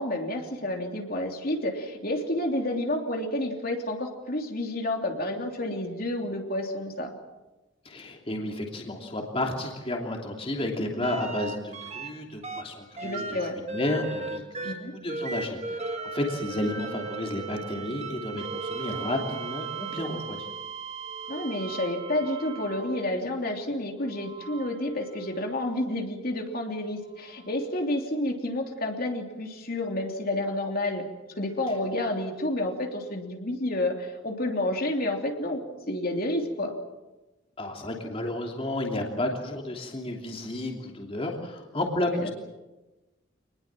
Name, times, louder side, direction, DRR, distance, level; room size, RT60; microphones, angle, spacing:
voice 1, 0.0-7.1 13.0-13.6 14.6-14.9 21.3-31.1 31.3-35.6 35.9-36.7 42.1-42.3, left 1 dB, 50° left, 2 dB, 3.1 m, -30 dB
voice 2, 7.8-13.4 13.7-20.4 37.6-42.3, left 1 dB, 30° left, 1 dB, 3.0 m, -32 dB
sound 1, 11.0-12.1 12.4-23.2 24.1-25.6 27.3-27.4, right 4 dB, 35° right, 2.3 m, -37 dB
26.5 x 20.5 x 7.5 m, 1.1 s
head